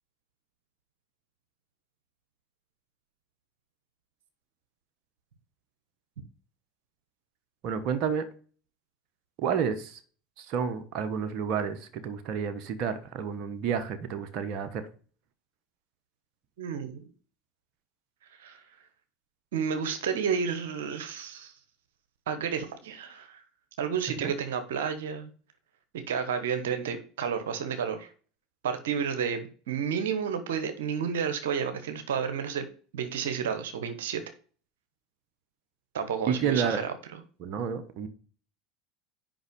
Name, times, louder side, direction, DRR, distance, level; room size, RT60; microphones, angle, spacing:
voice 1, 7.6-8.3 9.4-10.0 10.4-14.9 24.2-24.3 36.3-36.8 37.4-38.1, right 7 dB, 55° right, 1.2 m, -30 dB
voice 2, 16.6-17.1 18.3-18.6 19.5-21.5 22.3-23.4 23.8-25.3 25.9-28.1 28.6-32.7 32.9-34.2 35.9-37.2, right 7 dB, 80° right, 1.1 m, -31 dB
7.8 x 5.5 x 5.2 m
hypercardioid pair, 80°, 0 cm